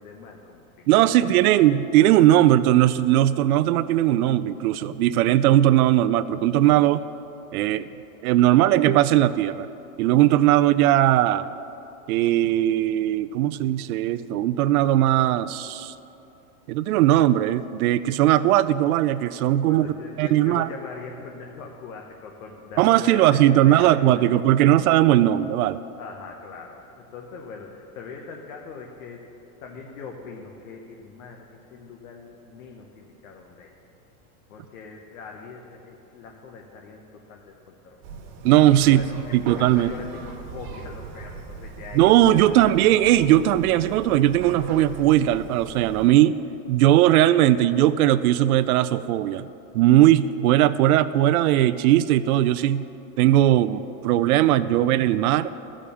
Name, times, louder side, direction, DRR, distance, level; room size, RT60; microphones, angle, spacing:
voice 1, 0.0-1.5 19.6-23.9 24.4-24.6 26.0-29.2 29.6-33.7 34.5-38.0 38.7-42.7, left 5 dB, 70° left, 1 dB, 1.2 m, -41 dB
voice 2, 0.9-7.0 7.5-7.9 8.2-9.7 10.0-11.5 12.1-15.9 16.7-19.9 20.2-20.7 22.8-25.8 38.4-39.1 39.3-39.9 41.9-46.4 46.7-49.5 49.7-52.8 53.2-55.5, right 13 dB, 75° right, 13 dB, 0.5 m, -19 dB
sound 1, 38.0-46.1, right 4 dB, 45° right, 1.5 m, -40 dB
14.0 x 5.0 x 7.0 m, 3.0 s
supercardioid pair, 155°, 44 cm